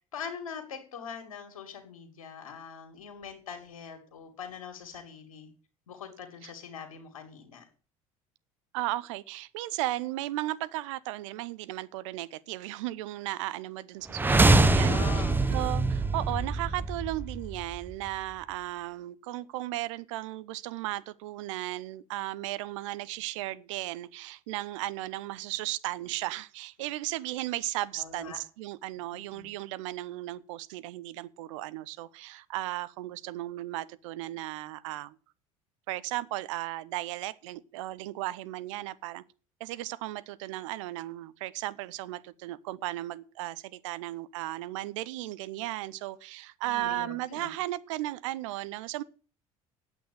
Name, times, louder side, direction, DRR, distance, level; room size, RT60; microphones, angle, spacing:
voice 1, 0.1-5.5 5.9-7.7 14.7-15.6 27.9-28.4 29.1-29.5 46.6-47.5, left 7 dB, 70° left, 2.5 m, -43 dB
voice 2, 8.7-15.2 15.5-35.2 35.9-39.2 39.6-49.0, right 16 dB, 60° right, 0.7 m, -35 dB
sound 1, 14.1-18.1, right 2 dB, 10° right, 0.9 m, -24 dB
9.0 x 8.0 x 9.1 m
figure-of-eight pair, 65°, 18 cm